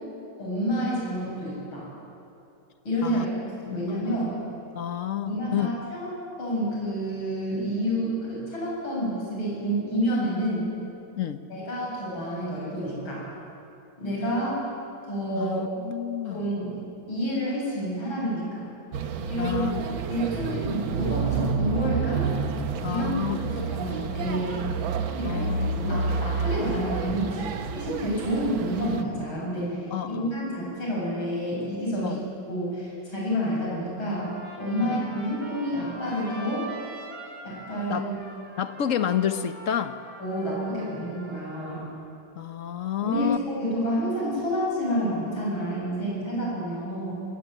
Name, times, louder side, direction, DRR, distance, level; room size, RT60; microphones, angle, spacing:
voice 1, 0.4-1.8 2.9-3.3 3.6-4.4 5.2-6.1 6.4-10.7 11.5-13.2 14.0-14.6 15.1-15.6 16.3-16.8 17.1-18.6 19.3-19.7 20.1-22.3 22.9-23.2 23.6-24.7 25.2-25.5 25.8-29.8 30.1-32.2 32.5-34.3 34.6-36.6 37.4-38.1 40.2-41.8 43.0-47.2, equal, 90° left, -5 dB, 8.7 m, -29 dB
voice 2, 3.6-4.1 4.7-5.7 11.2-11.4 15.3-16.5 19.4-19.8 22.8-23.8 25.2-26.2 29.9-30.3 32.0-32.2 34.8-35.0 37.9-38.1 38.6-40.0 42.4-43.4, left 9 dB, 50° left, 10 dB, 1.0 m, -30 dB
sound 1, 18.9-29.0, right 5 dB, 75° right, 1.9 m, -29 dB
Trumpet, 34.1-41.7, right 2 dB, 25° right, 4.0 m, -44 dB
21.0 x 20.0 x 9.0 m, 2.7 s
omnidirectional pair, 2.2 m